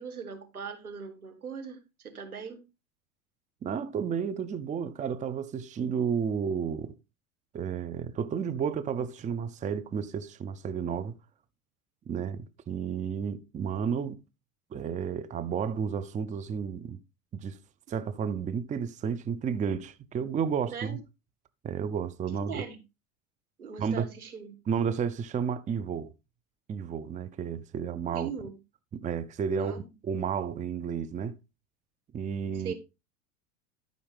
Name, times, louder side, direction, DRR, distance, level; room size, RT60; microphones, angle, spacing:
voice 1, 0.0-2.6 20.7-21.0 22.5-22.8 23.6-24.5 28.1-28.6 29.5-29.8 32.6-32.7, right 6 dB, 90° right, 1.9 m, -40 dB
voice 2, 3.6-6.9 7.5-11.2 12.1-14.2 14.7-17.0 17.3-17.6 17.9-21.0 21.6-22.7 23.8-24.1 24.7-26.1 26.7-28.3 28.9-29.7 30.0-31.4 32.1-32.7, right 7 dB, 20° right, 0.6 m, -32 dB
13.0 x 5.2 x 3.3 m
hypercardioid pair, 85°, 43 cm